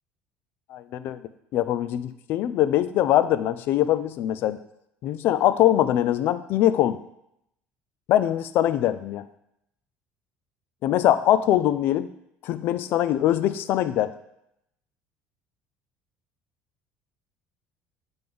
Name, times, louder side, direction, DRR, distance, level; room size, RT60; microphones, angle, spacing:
voice 1, 0.7-1.2 1.5-4.6 5.0-7.0 8.1-9.3 10.8-12.1 12.4-14.1, left 12 dB, 55° left, 14 dB, 0.4 m, -22 dB
7.6 x 3.5 x 5.3 m, 0.78 s
cardioid pair, 160°, 4 cm